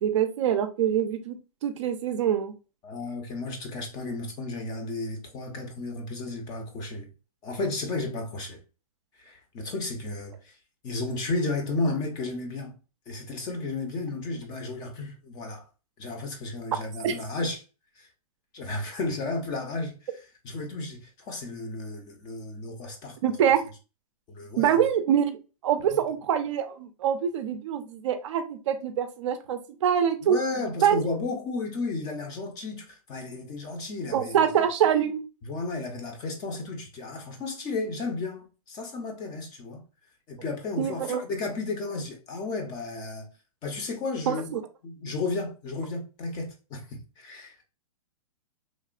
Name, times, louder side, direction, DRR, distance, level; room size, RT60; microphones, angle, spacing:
voice 1, 0.0-1.4 1.6-2.5 17.0-17.1 23.2-23.6 24.6-25.4 25.6-30.4 30.8-31.0 34.1-35.2 40.8-41.2 44.3-44.6, right 9 dB, 55° right, 0.4 m, -25 dB
voice 2, 2.8-7.1 7.4-8.6 9.2-10.6 10.8-12.8 13.1-15.7 16.0-17.6 18.0-18.1 18.5-23.2 24.3-24.8 25.9-26.0 30.2-34.5 35.4-39.8 40.3-43.3 43.6-44.6 44.8-47.6, left 3 dB, 20° left, 0.5 m, -33 dB
3.0 x 2.0 x 2.4 m
hypercardioid pair, 145°, 19 cm